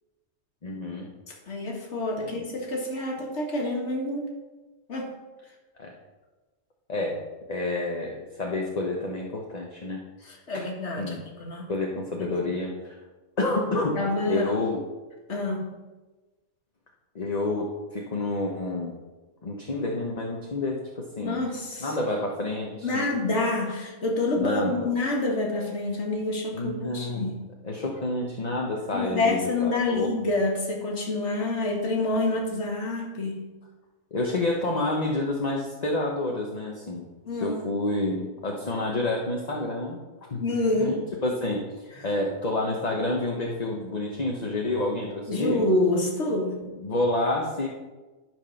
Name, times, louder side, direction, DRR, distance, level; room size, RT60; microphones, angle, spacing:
voice 1, 0.6-1.1 2.2-2.4 5.8-5.9 6.9-7.2 7.5-10.0 11.0-11.2 11.7-13.0 13.4-14.8 17.1-18.9 19.4-21.4 21.8-23.1 24.3-24.9 26.5-27.3 27.6-30.1 34.1-37.1 37.4-40.0 40.3-40.4 40.7-45.6 46.8-47.7, left 2 dB, 35° left, -1 dB, 1.0 m, -29 dB
voice 2, 1.3-4.3 4.9-5.1 10.2-11.7 12.2-12.3 14.0-14.6 15.3-15.7 21.2-21.9 22.8-27.4 28.9-33.4 37.3-37.6 40.4-40.9 45.3-46.6, left 2 dB, 60° left, -1 dB, 2.0 m, -27 dB
12.0 x 4.6 x 5.7 m, 1.2 s
omnidirectional pair, 1.3 m